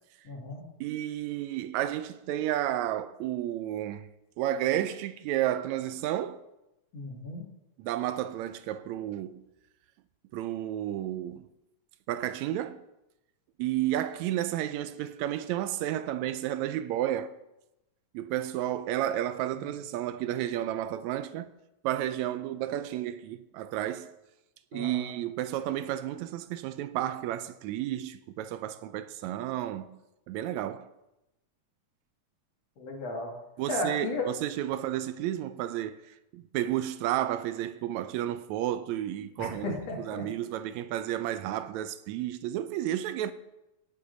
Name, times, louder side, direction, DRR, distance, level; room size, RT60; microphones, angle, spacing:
voice 1, 0.2-0.6 6.9-7.4 24.7-25.1 32.8-33.3 33.7-34.3 39.4-40.2, left 2 dB, 60° left, 3.1 m, -34 dB
voice 2, 0.8-4.1 4.4-6.4 7.8-9.4 10.3-11.5 12.1-12.8 13.6-17.3 18.1-21.5 21.8-24.1 24.7-30.0 30.3-30.9 33.6-43.3, right 12 dB, 80° right, 1.8 m, -32 dB
18.0 x 8.6 x 3.9 m
omnidirectional pair, 3.3 m